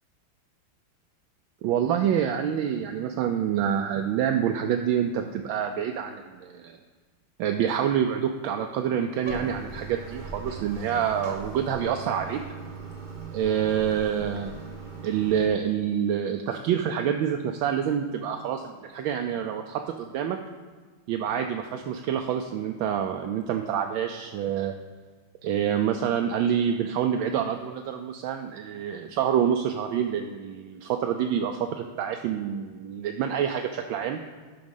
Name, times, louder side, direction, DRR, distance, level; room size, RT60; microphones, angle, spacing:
voice 1, 1.6-6.8 7.4-12.4 13.3-14.5 15.0-20.4 21.1-24.7 25.4-34.2, right 8 dB, 80° right, 5 dB, 1.3 m, -27 dB
Bathtub (filling or washing), 9.2-15.5, right 5 dB, 40° right, 0.7 m, -39 dB
11.5 x 3.9 x 5.4 m, 1.5 s
omnidirectional pair, 2.2 m